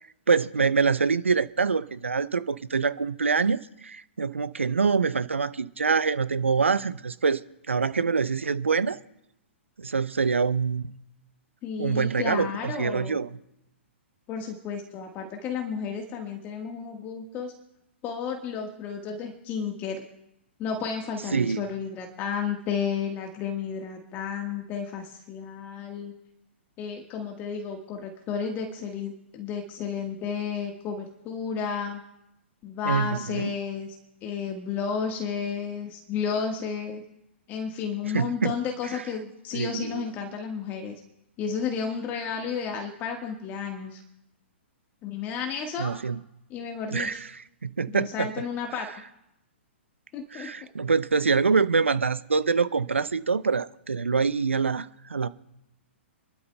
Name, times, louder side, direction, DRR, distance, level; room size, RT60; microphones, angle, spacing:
voice 1, 0.3-7.4 7.7-9.0 9.8-10.9 11.8-13.3 21.3-21.6 32.8-33.5 38.1-38.5 39.5-40.0 45.8-46.2 46.9-47.2 47.6-48.3 50.3-55.3, right 5 dB, 85° right, 0.6 m, -25 dB
voice 2, 11.6-13.2 14.3-17.5 18.0-20.0 20.6-26.1 26.8-32.0 32.6-34.0 34.2-37.0 37.5-40.9 41.4-44.0 45.0-45.9 46.5-47.2 47.9-49.0 50.1-50.5, left 6 dB, 30° left, 1.5 m, -32 dB
28.0 x 12.0 x 2.3 m
figure-of-eight pair, 115°, 7 cm